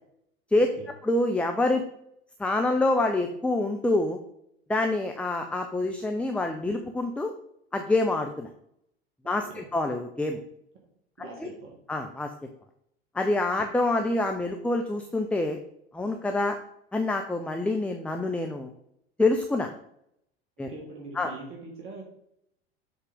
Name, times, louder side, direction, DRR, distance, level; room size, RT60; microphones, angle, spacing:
voice 1, 1.0-1.8 2.4-4.2 4.7-7.3 7.7-8.5 9.3-10.4 11.4-11.5 11.9-12.3 13.1-15.6 15.9-16.6 16.9-18.7 19.2-19.7 20.6-20.7 21.2-21.3, left 2 dB, 5° left, 4 dB, 0.5 m, -26 dB
voice 2, 11.2-11.7 20.7-22.0, right 3 dB, 40° right, -1 dB, 1.8 m, -42 dB
7.3 x 3.9 x 3.8 m, 0.74 s
figure-of-eight pair, 75°, 31 cm